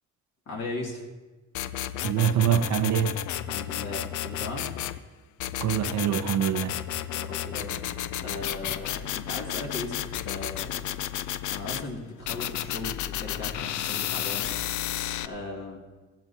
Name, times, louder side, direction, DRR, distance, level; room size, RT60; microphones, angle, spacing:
voice 1, 0.5-1.0 3.5-4.7 7.1-10.8 11.5-14.5 15.2-15.8, left 2 dB, 55° left, 2.6 m, -37 dB
sound 1, 1.5-5.0 5.4-11.8 12.3-15.3, left 12 dB, 75° left, 0.5 m, -32 dB
voice 2, 2.0-3.2 5.6-6.8, right 10 dB, 70° right, 0.7 m, -24 dB
15.5 x 15.0 x 2.8 m
cardioid pair, 90°, 30 cm